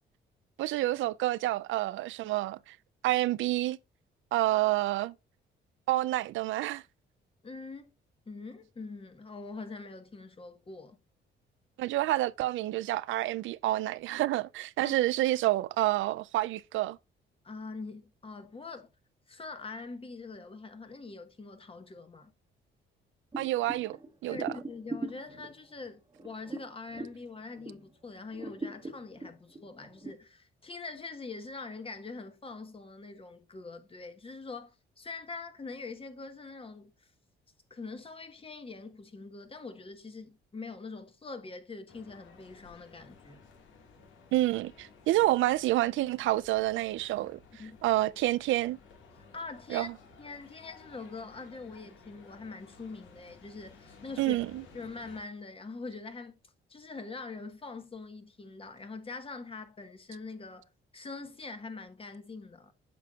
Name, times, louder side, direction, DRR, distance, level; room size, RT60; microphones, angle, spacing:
voice 1, 0.6-2.8 3.0-3.8 4.3-5.1 5.9-6.8 11.8-17.0 23.4-24.0 24.2-24.5 44.3-47.4 47.8-48.8 49.7-49.9 54.2-54.5, right 16 dB, 75° right, 0.4 m, -28 dB
voice 2, 7.4-7.9 8.3-11.0 14.8-15.0 17.4-18.9 19.3-22.3 24.3-37.1 37.7-43.4 47.6-47.8 49.3-49.9 50.2-54.4 54.7-56.4 56.7-62.7, left 3 dB, 30° left, 1.2 m, -43 dB
sound 1, 23.3-27.9 28.3-30.1, right 2 dB, 20° right, 1.1 m, -41 dB
sound 2, 41.9-55.2, left 4 dB, 80° left, 1.8 m, -56 dB
8.3 x 6.0 x 2.4 m
cardioid pair, 90°, 20 cm